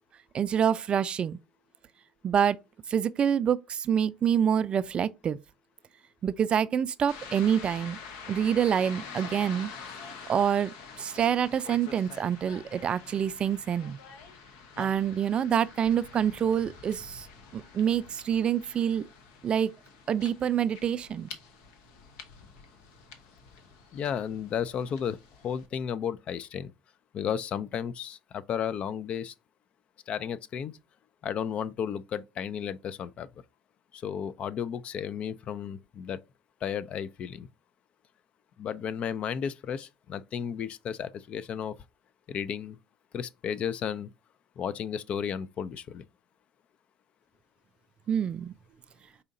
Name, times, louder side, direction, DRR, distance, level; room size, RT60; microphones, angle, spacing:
voice 1, 0.3-1.4 2.2-2.6 2.9-5.4 6.2-8.0 8.3-9.7 10.3-14.0 14.8-17.3 17.5-19.0 19.4-19.7 20.1-21.3 48.1-48.5, right 8 dB, 40° right, 0.3 m, -26 dB
sound 1, 7.1-25.7, left 5 dB, 75° left, 0.8 m, -47 dB
voice 2, 23.9-25.2 25.4-26.7 27.1-29.3 30.1-30.7 31.2-33.3 33.9-36.2 36.6-37.5 38.6-41.7 42.3-42.8 43.1-44.1 44.6-46.1, left 8 dB, 50° left, 0.4 m, -33 dB
4.9 x 2.8 x 2.6 m
hypercardioid pair, 70°, 3 cm